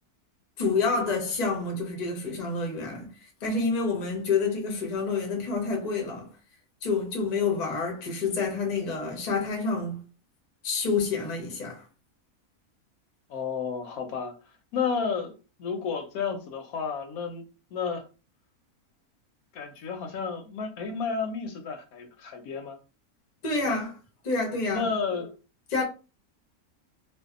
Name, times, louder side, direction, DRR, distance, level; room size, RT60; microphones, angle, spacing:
voice 1, 0.6-6.3 6.8-10.0 10.6-11.8 23.4-23.9 24.2-24.9 25.7-25.8, left 4 dB, 40° left, 0.6 m, -28 dB
voice 2, 13.3-14.4 14.7-17.4 17.7-18.1 19.5-22.8 23.6-23.8 24.7-25.3, left 5 dB, 80° left, 1.0 m, -31 dB
2.6 x 2.2 x 2.4 m
omnidirectional pair, 1.6 m